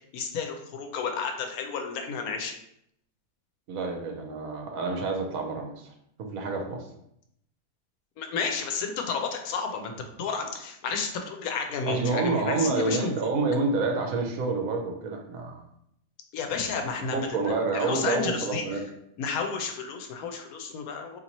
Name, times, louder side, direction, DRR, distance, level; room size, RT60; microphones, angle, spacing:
voice 1, 0.1-2.5 8.2-13.1 16.3-18.8 19.2-21.2, left 5 dB, 75° left, 4 dB, 1.1 m, -32 dB
voice 2, 3.7-5.9 6.2-6.8 11.9-15.6 17.1-18.8, right 3 dB, 75° right, 2 dB, 1.1 m, -28 dB
2.9 x 2.8 x 4.0 m, 0.74 s
omnidirectional pair, 1.5 m